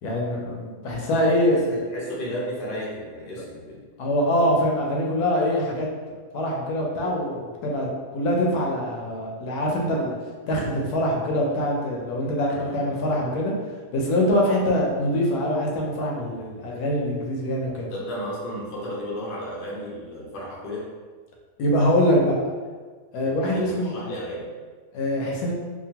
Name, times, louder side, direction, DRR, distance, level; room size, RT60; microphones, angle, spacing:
voice 1, 0.0-1.6 4.0-5.9 6.3-10.1 10.5-13.5 13.9-17.9 21.6-22.4 23.1-23.9 24.9-25.5, left 1 dB, 75° left, -2 dB, 1.1 m, -24 dB
voice 2, 1.5-3.8 12.5-13.3 17.9-20.9 23.2-24.4, equal, 55° left, -4 dB, 0.6 m, -34 dB
2.8 x 2.4 x 2.8 m, 1.5 s
omnidirectional pair, 1.7 m